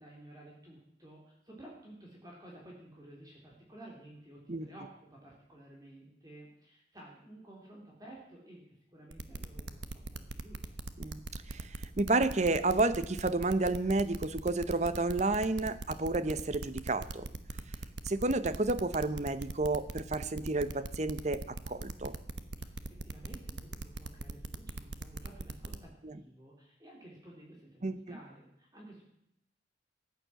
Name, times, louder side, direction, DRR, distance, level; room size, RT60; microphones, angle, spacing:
voice 1, 0.0-10.8 22.6-29.0, right 1 dB, 20° right, -2 dB, 3.2 m, -53 dB
sound 1, 9.1-25.8, right 2 dB, 85° right, 1.2 m, -40 dB
voice 2, 11.5-17.3 18.0-22.1 26.0-26.1 27.8-28.2, right 2 dB, 40° right, 13 dB, 0.9 m, -31 dB
15.0 x 9.7 x 7.6 m, 0.77 s
head